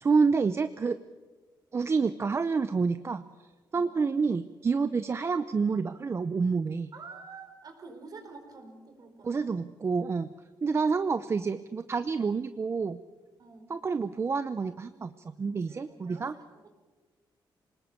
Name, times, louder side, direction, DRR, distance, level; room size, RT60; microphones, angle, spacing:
voice 1, 0.0-1.0 1.7-3.2 3.7-6.9 9.2-10.3 10.6-13.0 13.7-15.1 15.4-16.3, right 4 dB, 30° right, 12 dB, 0.6 m, -28 dB
voice 2, 6.9-9.7 13.4-13.7 15.4-16.8, right 4 dB, 50° right, 4 dB, 4.5 m, -49 dB
26.5 x 19.5 x 7.1 m, 1.4 s
cardioid pair, 125°, 8 cm